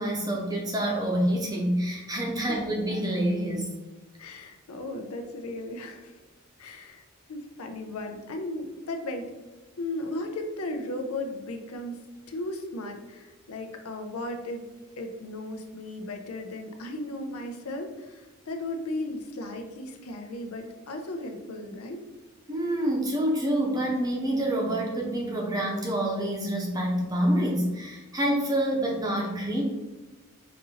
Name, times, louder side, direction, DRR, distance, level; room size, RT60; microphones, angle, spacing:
voice 1, 0.0-3.7 22.5-29.6, right 1 dB, 15° right, -1 dB, 0.7 m, -27 dB
voice 2, 4.2-6.2 6.6-7.0 7.3-9.3 9.8-12.0 12.3-14.6 15.0-22.0, left 1 dB, 85° left, 5 dB, 0.6 m, -36 dB
5.2 x 2.6 x 2.8 m, 1.2 s
head